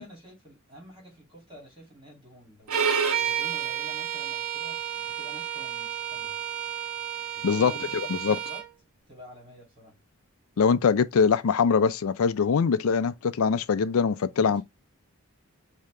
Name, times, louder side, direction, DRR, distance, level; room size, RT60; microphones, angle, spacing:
voice 1, 0.0-6.4 7.3-8.6 9.1-10.0 14.4-14.6, equal, 25° right, 2.4 m, -49 dB
Bowed string instrument, 2.7-8.7, right 8 dB, 75° right, 1.3 m, -30 dB
voice 2, 10.6-14.6, left 6 dB, 70° left, 0.4 m, -23 dB
5.0 x 2.8 x 3.2 m
head